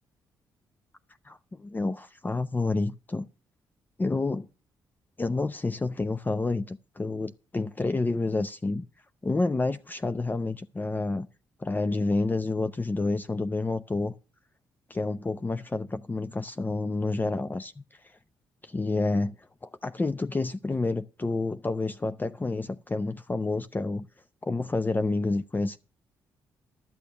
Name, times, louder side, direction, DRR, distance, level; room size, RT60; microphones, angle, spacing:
voice 1, 1.2-3.3 4.0-4.5 5.2-8.9 9.2-11.3 11.6-14.1 14.9-18.1 18.6-24.1 24.4-25.8, left 3 dB, 20° left, 0.6 m, -29 dB
12.5 x 6.8 x 6.4 m
cardioid pair, 75°, 8 cm